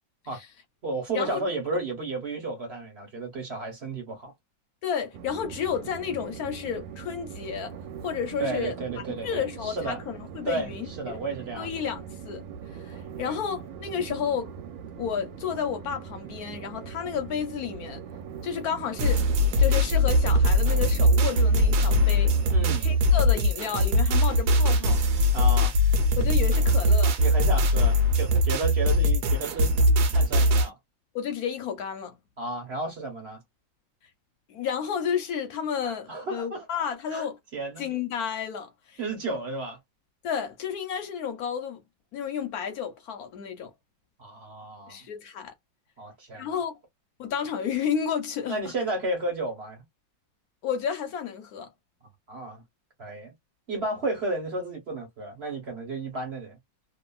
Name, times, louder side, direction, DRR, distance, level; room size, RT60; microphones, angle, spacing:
voice 1, 0.8-4.3 8.4-10.0 10.4-11.8 13.2-13.4 22.5-22.9 25.3-25.7 27.2-29.7 30.1-30.8 32.4-33.4 35.8-36.7 37.1-37.3 37.5-37.9 39.0-39.8 44.2-45.0 46.0-46.6 48.5-49.8 52.3-52.6 53.0-53.3 53.7-56.6, right 2 dB, 40° right, 1.0 m, -33 dB
voice 2, 4.8-7.7 8.0-8.8 9.2-11.2 11.6-12.5 12.7-14.5 15.0-18.0 18.4-19.2 19.6-22.4 22.8-25.0 26.2-27.2 31.1-32.2 34.5-37.4 37.8-39.0 40.2-41.8 42.1-43.7 44.9-45.5 46.3-46.7 47.2-48.6 50.6-51.7, left 7 dB, 65° left, 1.0 m, -31 dB
Train, 5.1-23.0, right 7 dB, 90° right, 1.3 m, -41 dB
sound 1, 19.0-30.7, left 1 dB, 65° right, 1.1 m, -21 dB
2.9 x 2.4 x 2.3 m
omnidirectional pair, 2.1 m